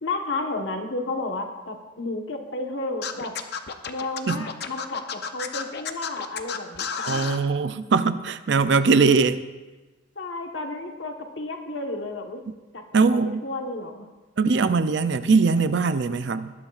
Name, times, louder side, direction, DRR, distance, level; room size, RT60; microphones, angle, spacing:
voice 1, 0.0-3.3 3.9-6.9 10.2-12.4 12.7-12.8 13.1-14.1, left 2 dB, 65° left, 3 dB, 1.3 m, -32 dB
Scratching (performance technique), 3.0-7.4, left 6 dB, 50° left, 0.7 m, -31 dB
voice 2, 7.1-9.4 12.9-13.4 14.4-16.5, right 4 dB, 60° right, 12 dB, 0.5 m, -21 dB
19.5 x 11.0 x 2.5 m, 1.2 s
head